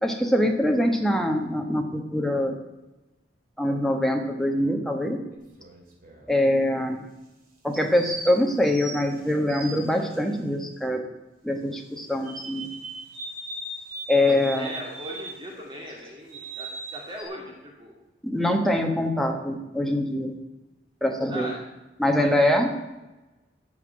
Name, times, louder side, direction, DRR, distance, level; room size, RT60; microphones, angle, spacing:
voice 1, 0.0-2.5 3.6-5.2 6.3-7.0 7.6-11.0 11.4-12.7 14.1-14.7 18.2-20.3 21.0-21.5 22.0-22.7, left 1 dB, ahead, 3 dB, 1.2 m, -24 dB
sound 1, 5.3-6.3 7.7-10.2 12.2-15.5 15.9-17.2, right 3 dB, 50° right, 2.9 m, -38 dB
voice 2, 14.5-18.0 21.3-21.6 22.2-22.6, equal, 25° right, -2 dB, 2.3 m, -39 dB
12.5 x 5.9 x 9.4 m, 1.1 s
head